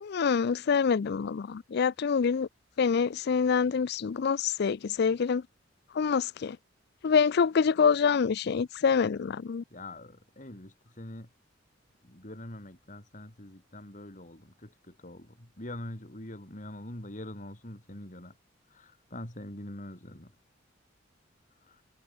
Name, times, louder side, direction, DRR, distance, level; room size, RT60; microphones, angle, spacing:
voice 1, 0.0-2.5 2.8-5.4 6.0-6.6 7.0-9.6, left 6 dB, 60° left, 0.4 m, -26 dB
voice 2, 9.7-11.3 12.0-18.4 18.7-20.3 21.6-21.8, left 1 dB, 40° left, 4.8 m, -44 dB
head